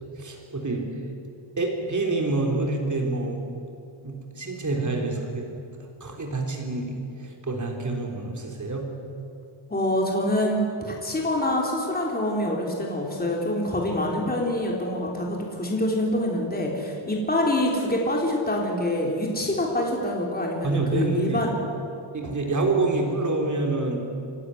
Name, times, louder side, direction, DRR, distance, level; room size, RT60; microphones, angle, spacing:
voice 1, 0.2-0.9 1.6-3.4 4.0-5.5 6.0-8.9 20.6-21.5 22.1-24.0, right 3 dB, 35° right, 1 dB, 3.8 m, -27 dB
voice 2, 9.7-21.5, left 1 dB, 20° left, -1 dB, 3.8 m, -26 dB
26.5 x 12.5 x 9.9 m, 2.6 s
wide cardioid pair, 120°, 49 cm